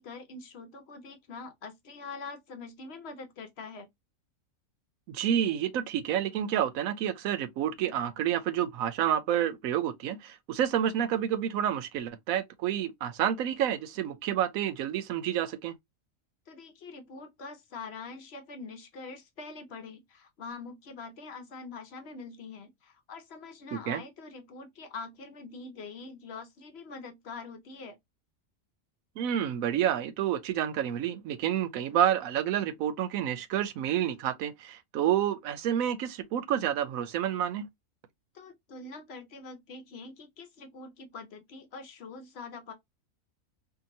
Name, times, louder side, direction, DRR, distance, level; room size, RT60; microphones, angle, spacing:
voice 1, 0.0-3.9 16.5-28.0 38.3-42.7, left 4 dB, 60° left, 0.8 m, -44 dB
voice 2, 5.1-15.7 23.7-24.0 29.2-37.7, right 10 dB, 90° right, 1.0 m, -29 dB
2.8 x 2.5 x 2.5 m
omnidirectional pair, 1.4 m